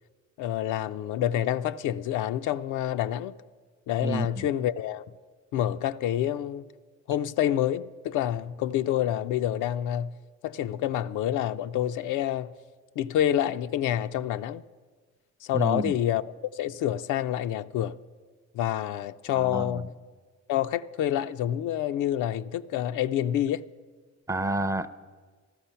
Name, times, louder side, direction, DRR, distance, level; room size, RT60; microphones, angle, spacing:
voice 1, 0.4-3.3 3.9-5.1 5.5-6.7 7.1-10.2 10.4-12.5 13.0-14.6 15.4-18.0 18.5-19.9 20.5-23.6, left 11 dB, 85° left, 0.5 m, -28 dB
voice 2, 4.0-4.5 15.5-15.9 19.3-19.8 24.3-24.9, right 2 dB, 10° right, 0.5 m, -29 dB
13.5 x 12.5 x 5.6 m
cardioid pair, 90°, 30 cm